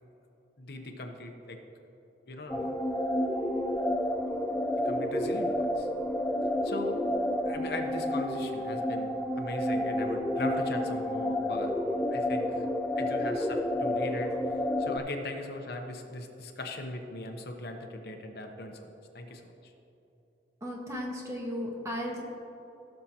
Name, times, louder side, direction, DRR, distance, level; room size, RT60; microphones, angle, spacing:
voice 1, 0.6-1.6 2.3-2.7 4.8-5.9 6.6-7.0 7.4-11.7 12.1-12.6 13.0-14.4 14.8-18.9 19.1-19.7, left 2 dB, 60° left, 3 dB, 0.9 m, -39 dB
sound 1, 2.5-15.0, left 1 dB, 5° left, 0.3 m, -30 dB
voice 2, 20.6-22.2, equal, 20° right, -2 dB, 1.4 m, -35 dB
16.5 x 6.6 x 2.9 m, 2.9 s
head